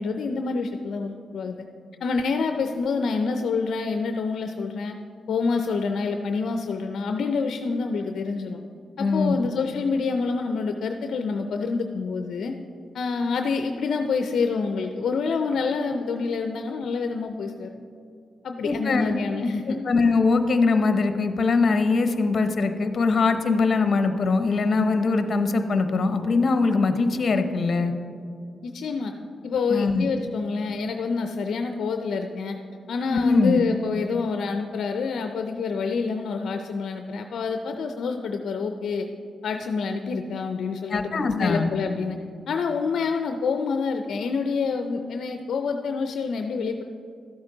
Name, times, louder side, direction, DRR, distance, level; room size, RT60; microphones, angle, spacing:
voice 1, 0.0-1.7 2.0-5.0 5.3-8.6 9.0-12.5 12.9-17.7 18.4-19.8 28.6-29.1 29.4-32.6 32.9-39.1 39.4-42.2 42.5-46.8, left 4 dB, 75° left, 5 dB, 0.5 m, -27 dB
voice 2, 9.0-9.3 18.6-19.1 19.8-27.9 29.7-30.1 33.1-33.6 40.9-41.7, left 4 dB, 50° left, 8 dB, 0.8 m, -22 dB
13.0 x 8.0 x 3.9 m, 2.4 s
cardioid pair, 80°, 0 cm